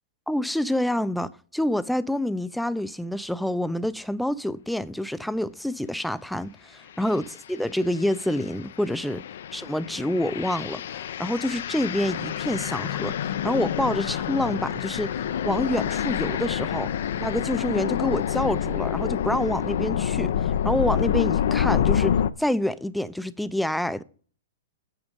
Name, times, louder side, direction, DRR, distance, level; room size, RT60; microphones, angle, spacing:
voice 1, 0.3-9.2 9.5-16.9 17.2-24.0, left 1 dB, ahead, 0.5 m, -27 dB
sound 1, 7.0-7.3 7.9-22.3, left 9 dB, 70° left, 0.5 m, -27 dB
9.0 x 6.1 x 5.2 m
hypercardioid pair, 120°, 0 cm